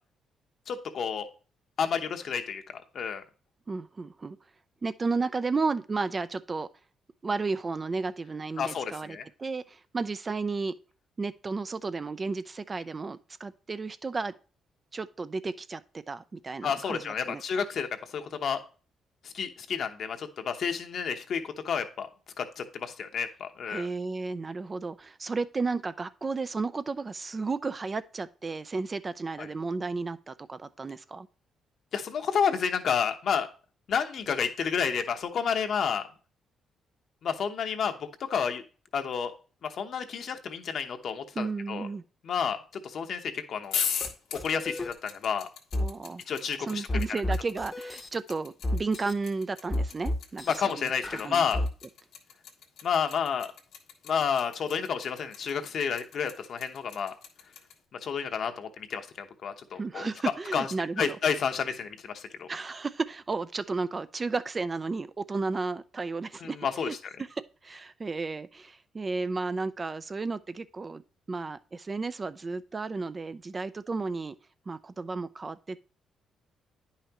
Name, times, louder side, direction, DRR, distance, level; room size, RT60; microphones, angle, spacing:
voice 1, 0.7-1.3 1.8-3.2 8.6-9.3 16.6-18.6 19.2-22.1 22.4-23.9 29.4-29.5 31.9-33.5 33.9-36.0 37.2-38.6 38.9-39.3 39.6-41.9 42.2-42.6 42.8-43.8 44.4-45.5 46.3-47.2 50.5-51.6 52.8-53.5 54.0-57.1 58.0-60.1 60.5-60.7 61.0-62.5 66.4-66.9, left 7 dB, 60° left, 0.9 m, -30 dB
voice 2, 3.7-4.4 4.8-6.7 7.2-10.7 11.2-14.3 14.9-17.4 23.7-31.3 41.4-42.0 45.8-46.2 46.7-51.6 59.7-61.2 62.5-66.6 66.8-67.0 67.6-71.0 71.3-74.3 74.7-75.8, right 4 dB, 30° right, 0.4 m, -33 dB
sound 1, 43.6-57.7, left 7 dB, 85° left, 1.3 m, -37 dB
sound 2, 44.0-44.1 44.3-44.9 45.7-45.9 46.9-48.1 48.6-49.1 49.7-50.6 51.0-51.7, left 1 dB, 25° left, 0.8 m, -30 dB
9.6 x 5.7 x 2.9 m
cardioid pair, 90°, 0 cm